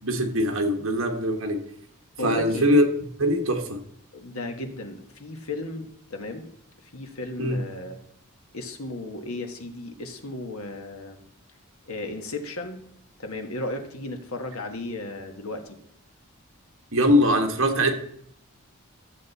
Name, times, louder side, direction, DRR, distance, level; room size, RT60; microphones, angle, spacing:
voice 1, 0.0-1.6 2.2-2.9 3.2-3.8 7.4-7.6 16.9-17.9, equal, 70° right, 1.4 m, -22 dB
voice 2, 2.2-2.7 4.1-6.5 6.9-8.0 8.5-11.2 11.8-12.8 13.2-15.8, left 2 dB, 85° left, 1.5 m, -35 dB
13.0 x 7.5 x 4.1 m
head